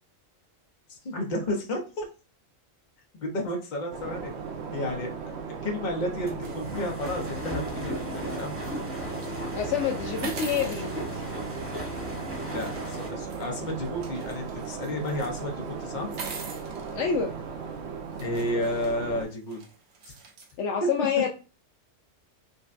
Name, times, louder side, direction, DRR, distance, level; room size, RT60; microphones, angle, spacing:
voice 1, 0.9-2.0 3.1-4.3 4.7-5.1 5.6-8.6 12.5-16.1 18.2-19.6 20.0-20.1, left 1 dB, 40° left, 2 dB, 0.9 m, -32 dB
sound 1, 3.9-19.2, right 5 dB, 65° right, 0.8 m, -37 dB
sound 2, 6.1-13.1, left 1 dB, 10° right, 0.9 m, -37 dB
sound 3, 6.4-8.7 9.1-9.4 10.2-11.9 12.6-15.4 16.0-16.9 17.7-17.8 18.2-20.5, right 4 dB, 85° right, 1.2 m, -44 dB
voice 2, 9.5-11.2 11.8-12.0 16.9-17.3 20.6-21.3, left 7 dB, 70° left, 3 dB, 0.8 m, -28 dB
5.1 x 2.2 x 2.5 m, 0.34 s
omnidirectional pair, 1.4 m